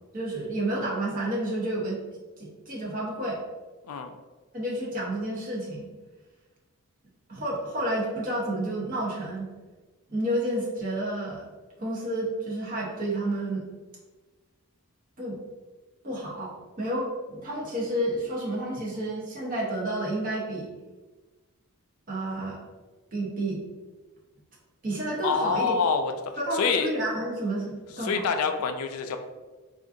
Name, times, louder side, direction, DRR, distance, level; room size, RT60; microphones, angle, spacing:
voice 1, 0.1-2.0 2.4-3.4 4.5-5.9 7.3-9.5 10.1-11.5 11.8-13.7 15.2-15.4 16.0-20.7 22.1-22.6 23.1-23.6 24.8-25.7 26.4-28.2, right 1 dB, 40° right, -4 dB, 0.7 m, -30 dB
voice 2, 25.2-26.9 28.0-29.2, left 5 dB, 75° left, 6 dB, 0.3 m, -26 dB
3.6 x 2.5 x 2.5 m, 1.3 s
head